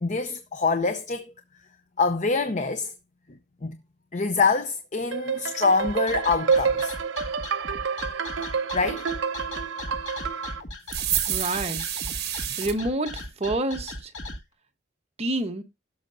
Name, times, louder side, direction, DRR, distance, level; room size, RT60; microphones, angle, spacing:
voice 1, 0.0-1.3 2.0-2.9 3.6-3.8 4.1-6.9 8.4-8.5 8.7-9.0, left 4 dB, 40° left, 0.7 m, -25 dB
sound 1, 5.1-10.6, right 5 dB, 90° right, 0.8 m, -28 dB
sound 2, 5.8-14.4, left 1 dB, 80° left, 2.1 m, -37 dB
sound 3, 10.9-12.7, right 11 dB, 60° right, 1.4 m, -28 dB
voice 2, 11.3-11.8 12.6-14.1 15.2-15.6, right 2 dB, 35° right, 1.1 m, -28 dB
17.0 x 6.5 x 2.6 m
head